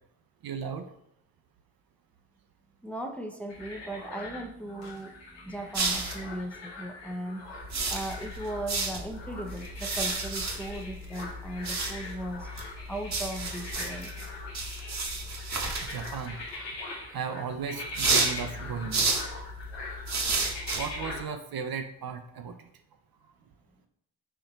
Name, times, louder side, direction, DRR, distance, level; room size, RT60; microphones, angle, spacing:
voice 1, 0.4-0.9 15.5-16.4 16.7-19.2 20.7-22.7, right 6 dB, 55° right, 7 dB, 0.6 m, -36 dB
voice 2, 2.8-7.4 7.9-12.5 12.9-14.1, right 1 dB, 5° left, 4 dB, 0.6 m, -37 dB
sound 1, 3.5-21.2, left 2 dB, 80° left, 1.2 m, -42 dB
sound 2, 5.7-6.4 7.5-16.5 17.9-21.2, right 3 dB, 40° right, 1.0 m, -32 dB
4.4 x 2.8 x 3.9 m, 0.73 s
supercardioid pair, 40°, 43 cm